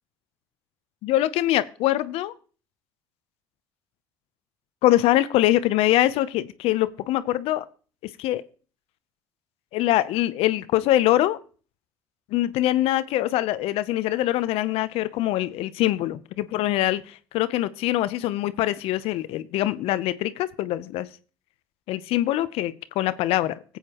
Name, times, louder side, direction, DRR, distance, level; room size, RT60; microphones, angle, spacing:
voice 1, 1.0-2.3 4.8-7.7 8.0-8.4 9.7-11.4 12.3-21.1 21.9-23.8, left 14 dB, 70° left, 15 dB, 0.7 m, -23 dB
16.0 x 8.2 x 3.0 m, 0.39 s
supercardioid pair, 80°, 11 cm